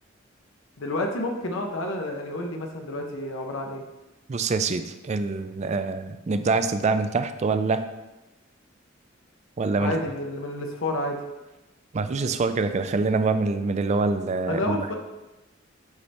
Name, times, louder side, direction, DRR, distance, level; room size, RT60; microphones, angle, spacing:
voice 1, 0.8-3.8 9.8-11.2 14.5-15.0, left 1 dB, 80° left, 2 dB, 0.8 m, -29 dB
voice 2, 4.3-7.9 9.6-9.9 11.9-14.8, right 3 dB, 35° right, 10 dB, 0.4 m, -25 dB
8.2 x 4.1 x 3.3 m, 1.0 s
head